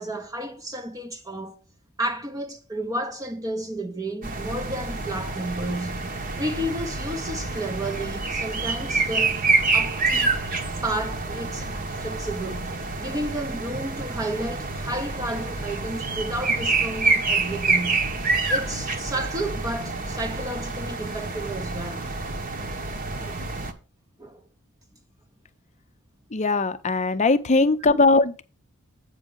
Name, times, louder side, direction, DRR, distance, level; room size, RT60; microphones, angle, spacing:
voice 1, 0.0-1.6 2.0-9.5 9.7-10.3 10.8-18.1 18.5-22.1 23.2-23.5 24.2-24.4, right 1 dB, 15° right, 0.6 m, -32 dB
sound 1, 4.2-23.7, right 3 dB, 40° right, 1.0 m, -27 dB
voice 2, 26.3-28.4, left 3 dB, 30° left, 0.6 m, -20 dB
8.2 x 6.0 x 5.2 m
head